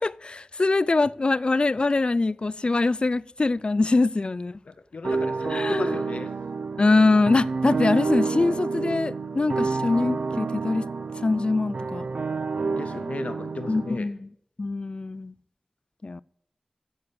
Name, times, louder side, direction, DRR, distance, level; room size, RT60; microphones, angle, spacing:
voice 1, 0.0-4.5 5.5-6.0 6.8-10.9 11.2-12.0 13.7-14.3 14.6-15.3 16.0-16.2, left 3 dB, 50° left, 0.3 m, -23 dB
voice 2, 4.7-6.3 12.6-14.1, left 3 dB, 85° left, 0.6 m, -36 dB
sound 1, 5.0-14.0, right 4 dB, 85° right, 0.5 m, -29 dB
9.7 x 6.7 x 8.6 m
wide cardioid pair, 50°, 2 cm